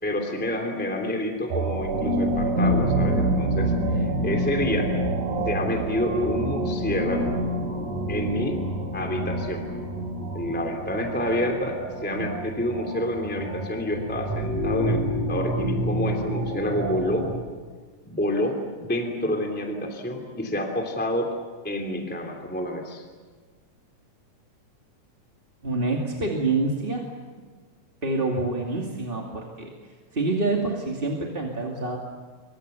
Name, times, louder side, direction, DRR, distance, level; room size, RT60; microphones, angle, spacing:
voice 1, 0.0-4.9 5.4-7.4 8.1-8.6 8.9-9.7 10.3-17.3 18.0-21.3 21.6-23.0, left 1 dB, 5° left, 2 dB, 2.8 m, -28 dB
sound 1, 1.5-17.4, right 1 dB, 85° right, 4.5 m, -27 dB
voice 2, 25.6-27.0 28.0-29.7 30.1-32.0, right 3 dB, 20° right, -1 dB, 2.3 m, -26 dB
28.5 x 24.5 x 7.0 m, 1.5 s
omnidirectional pair, 3.4 m